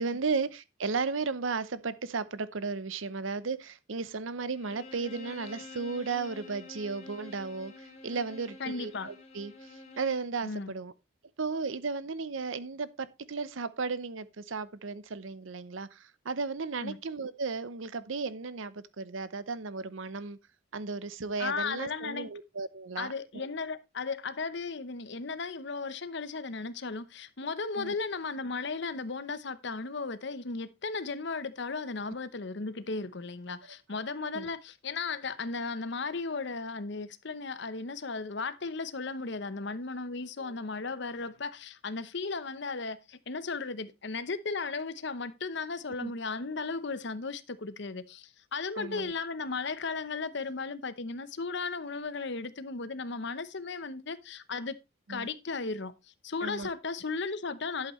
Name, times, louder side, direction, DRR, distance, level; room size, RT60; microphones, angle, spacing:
voice 1, 0.0-10.9 11.4-20.4 20.7-23.1 23.3-23.5 27.8-28.0 34.3-34.5 40.4-40.6 46.0-46.1 48.8-49.1 55.1-55.3 56.4-56.7, right 4 dB, 75° right, 0.8 m, -35 dB
Bowed string instrument, 4.5-10.3, left 3 dB, 30° left, 3.0 m, -48 dB
voice 2, 8.6-9.1 10.4-10.7 16.8-17.0 21.4-22.3 23.0-54.8 55.1-55.9 56.2-57.9, left 4 dB, 60° left, 0.8 m, -35 dB
11.0 x 8.1 x 3.1 m
head